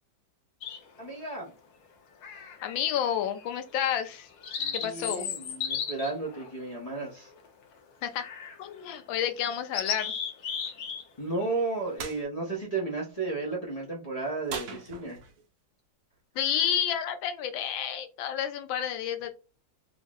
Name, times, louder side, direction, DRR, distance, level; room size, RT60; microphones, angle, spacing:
sound 1, 0.6-1.1 2.2-2.9 3.3-3.5 4.0-7.5 8.2-8.6 9.0-9.1 9.5-11.0 11.3-11.6, left 7 dB, 65° left, 1.2 m, -35 dB
voice 1, 1.0-1.5 4.6-7.3 11.2-15.2, right 3 dB, 50° left, -1 dB, 0.4 m, -33 dB
voice 2, 2.6-4.3 4.7-5.3 8.0-8.3 8.6-10.1 16.4-19.3, left 9 dB, 85° left, 8 dB, 1.4 m, -30 dB
sound 2, 12.0-12.2 14.5-15.4, right 5 dB, 75° right, 0.8 m, -39 dB
3.6 x 2.0 x 3.6 m, 0.33 s
omnidirectional pair, 2.1 m